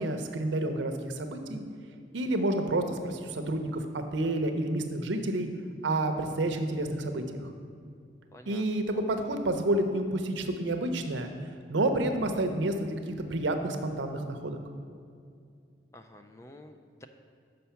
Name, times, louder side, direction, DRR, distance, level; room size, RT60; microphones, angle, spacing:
voice 1, 0.0-1.6 2.1-5.5 5.8-7.5 8.5-11.3 11.7-14.6, right 1 dB, 80° right, 6 dB, 0.7 m, -29 dB
voice 2, 8.3-8.8 15.9-17.1, left 1 dB, 15° left, 7 dB, 0.3 m, -50 dB
6.9 x 5.2 x 5.7 m, 2.3 s
head